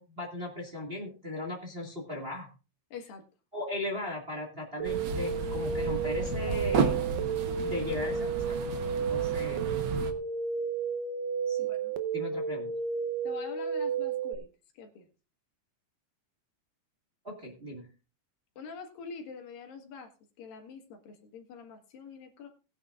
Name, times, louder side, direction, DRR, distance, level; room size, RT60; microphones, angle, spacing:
voice 1, 0.0-2.5 3.5-7.0 7.6-9.7 11.5-11.7 12.1-12.7 17.2-17.8, left 2 dB, 25° right, 1 dB, 1.6 m, -38 dB
voice 2, 2.9-3.2 6.0-6.6 9.2-9.5 11.6-12.0 13.2-14.5 14.8-15.1 18.6-20.1 20.4-22.5, left 4 dB, 85° left, 4 dB, 3.4 m, -45 dB
sound 1, 4.8-10.1, right 5 dB, 60° right, 1.3 m, -33 dB
sound 2, 4.8-14.4, right 6 dB, 80° right, 2.5 m, -32 dB
19.0 x 9.7 x 2.5 m, 0.32 s
omnidirectional pair, 3.9 m